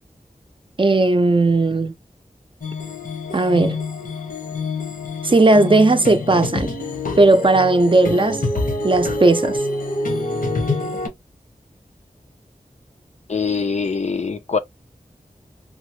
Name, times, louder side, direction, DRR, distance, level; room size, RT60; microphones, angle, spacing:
voice 1, 0.8-1.9 3.3-3.8 5.2-6.7 7.2-8.4 8.8-9.6, right 2 dB, 35° right, 0.5 m, -16 dB
sound 1, 2.6-11.1, left 2 dB, 80° left, 1.0 m, -26 dB
voice 2, 13.3-14.6, left 5 dB, 55° left, 0.4 m, -23 dB
3.5 x 2.0 x 3.0 m
wide cardioid pair, 70°, 14 cm